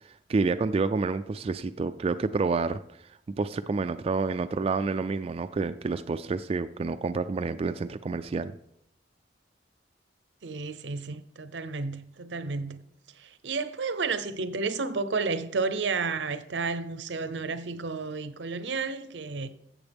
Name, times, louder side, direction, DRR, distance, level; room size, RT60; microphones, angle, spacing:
voice 1, 0.3-2.8 3.4-8.5, right 4 dB, 35° right, 0.3 m, -28 dB
voice 2, 10.4-12.8 13.2-19.5, right 4 dB, 80° right, 0.7 m, -31 dB
15.0 x 7.2 x 3.5 m
head